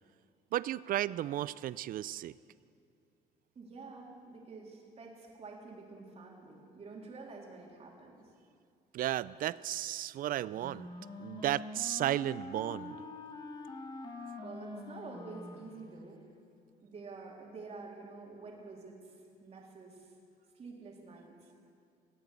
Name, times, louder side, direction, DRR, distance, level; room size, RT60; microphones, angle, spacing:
voice 1, 0.5-2.3 8.9-10.9 11.2-13.0, right 13 dB, 55° right, 19 dB, 0.4 m, -34 dB
voice 2, 3.6-8.2 14.4-16.2 16.8-19.1 19.4-20.1 20.6-21.5, right 3 dB, 40° right, -1 dB, 3.5 m, -48 dB
Wind instrument woodwind instrument, 10.2-16.4, left 2 dB, 25° left, 1.8 m, -46 dB
18.5 x 9.1 x 8.4 m, 2.4 s
cardioid pair, 110°, 17 cm